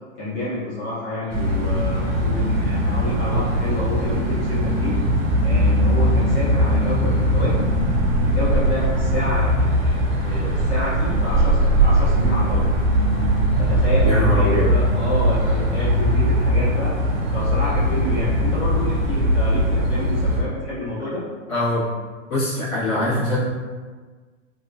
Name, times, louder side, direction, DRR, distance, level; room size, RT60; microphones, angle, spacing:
voice 1, 0.2-4.9 5.4-7.7 8.2-10.0 10.2-12.7 13.6-17.0 17.3-21.2, left 1 dB, 65° left, -10 dB, 1.5 m, -28 dB
sound 1, 1.3-20.4, equal, 35° right, 0.7 m, -20 dB
voice 2, 14.0-14.7 21.5-21.8 22.3-23.4, left 1 dB, 85° left, -11 dB, 1.5 m, -23 dB
2.9 x 2.4 x 2.3 m, 1.4 s
hypercardioid pair, 115°, 40 cm